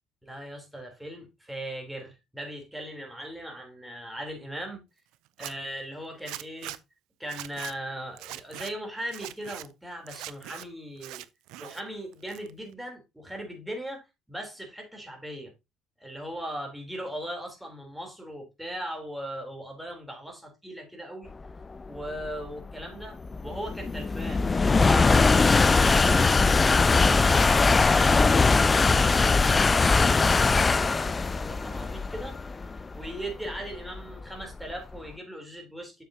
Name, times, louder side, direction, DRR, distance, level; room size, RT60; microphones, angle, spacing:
voice 1, 0.2-4.8 5.4-6.8 7.2-11.2 11.6-15.5 16.0-21.3 21.9-26.5 26.9-32.4 32.7-36.0, right 1 dB, 5° right, 3.4 m, -39 dB
Zipper (clothing), 5.3-5.5 6.3-6.8 7.2-7.7 8.2-8.7 9.1-9.7 10.1-10.6 11.0-11.8 12.1-12.7, right 16 dB, 80° right, 0.5 m, -41 dB
sound 1, 21.6-35.0, left 4 dB, 25° left, 0.4 m, -21 dB
7.5 x 7.0 x 2.8 m
cardioid pair, 95°, 0 cm